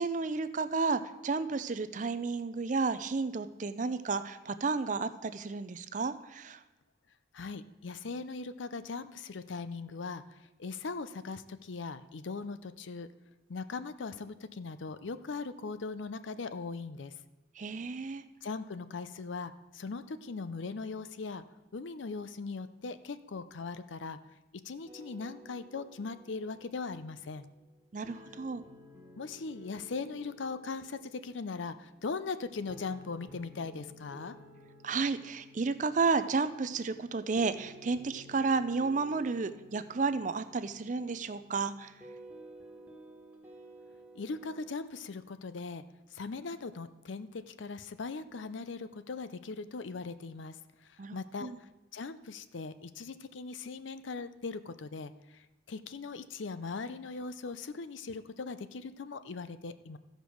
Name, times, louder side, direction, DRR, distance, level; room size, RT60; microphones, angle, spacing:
voice 1, 0.0-6.6 17.6-18.2 27.9-28.6 34.8-41.9 51.0-51.6, right 4 dB, 40° right, 12 dB, 0.4 m, -32 dB
voice 2, 7.3-10.2 10.6-13.1 13.5-17.2 18.4-21.4 21.7-24.2 24.5-27.5 29.2-34.4 44.1-45.8 46.1-51.5 51.9-60.0, left 4 dB, 70° left, 13 dB, 0.5 m, -40 dB
sound 1, 24.9-44.8, equal, 10° right, 1.4 m, -55 dB
14.0 x 5.2 x 6.2 m, 1.1 s
head